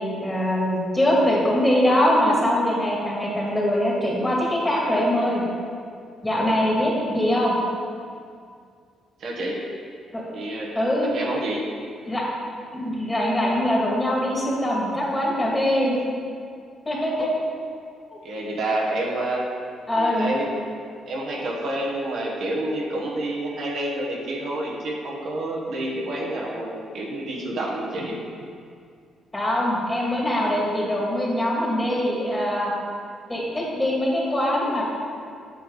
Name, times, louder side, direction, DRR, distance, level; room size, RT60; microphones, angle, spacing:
voice 1, 0.0-5.4 6.2-7.6 10.1-10.2 10.7-11.1 12.1-12.2 12.7-16.0 16.9-17.3 18.1-18.2 19.9-20.3 29.3-32.7 33.3-34.8, left 1 dB, 15° left, -4 dB, 2.2 m, -22 dB
voice 2, 9.2-9.7 10.3-10.8 11.0-11.7 17.2-17.3 18.2-19.5 19.9-20.5 21.1-28.2, right 1 dB, 65° right, -2 dB, 1.3 m, -28 dB
8.3 x 6.9 x 3.9 m, 2.3 s
cardioid pair, 90°, 0 cm